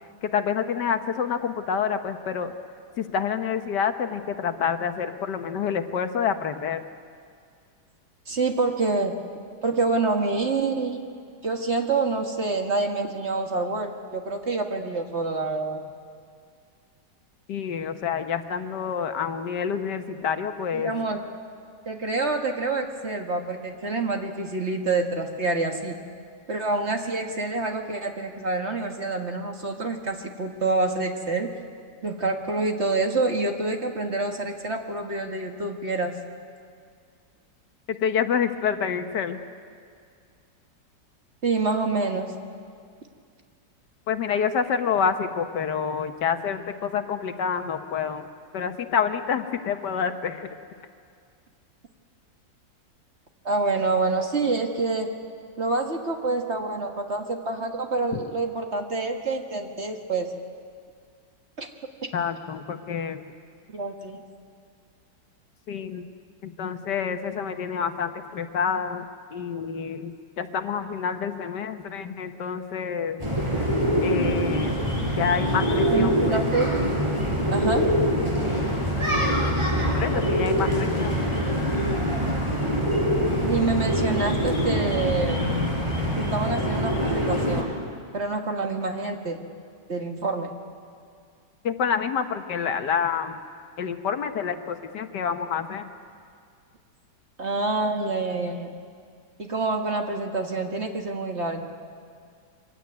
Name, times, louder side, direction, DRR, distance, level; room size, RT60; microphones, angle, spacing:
voice 1, 0.3-2.5 3.0-6.8 17.5-20.9 38.0-39.4 44.1-48.2 48.5-50.5 62.1-63.2 65.7-66.0 66.4-69.0 69.3-73.2 74.0-74.8 75.2-76.4 79.9-81.2 91.6-93.3 93.8-95.9, left 7 dB, 70° left, 8 dB, 1.6 m, -27 dB
voice 2, 8.3-9.1 9.6-11.0 11.4-15.8 20.7-21.2 21.9-26.0 26.5-31.5 32.0-36.1 41.4-42.3 53.4-55.1 55.6-60.3 61.6-61.7 63.7-64.2 75.9-76.7 77.5-77.9 83.5-85.4 86.2-87.7 88.1-89.4 89.9-90.5 97.4-98.8 99.4-101.7, right 3 dB, 40° right, 3 dB, 1.7 m, -27 dB
sound 1, 73.2-87.6, equal, 15° right, 4.5 m, -24 dB
24.0 x 16.5 x 9.5 m, 2.2 s
omnidirectional pair, 2.0 m